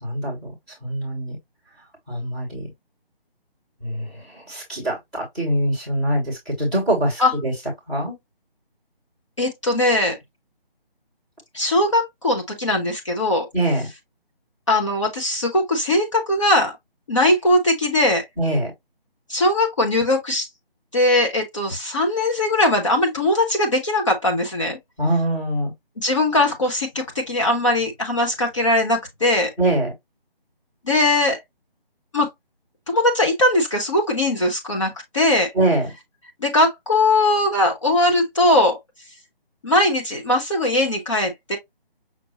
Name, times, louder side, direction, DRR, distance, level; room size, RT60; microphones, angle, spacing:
voice 1, 0.0-0.5 0.8-1.4 2.1-2.7 3.8-7.5 7.9-8.1 13.5-13.9 18.4-18.7 25.0-25.7 29.6-29.9 35.5-35.9, right 1 dB, ahead, 1.1 m, -23 dB
voice 2, 9.4-10.2 11.5-13.5 14.7-16.7 17.1-18.2 19.3-20.5 20.9-24.8 26.0-29.5 30.9-31.4 32.1-32.3 32.9-35.5 36.4-38.8 39.6-41.6, left 1 dB, 30° left, 0.9 m, -20 dB
6.0 x 2.7 x 2.8 m
figure-of-eight pair, 160°, 30 cm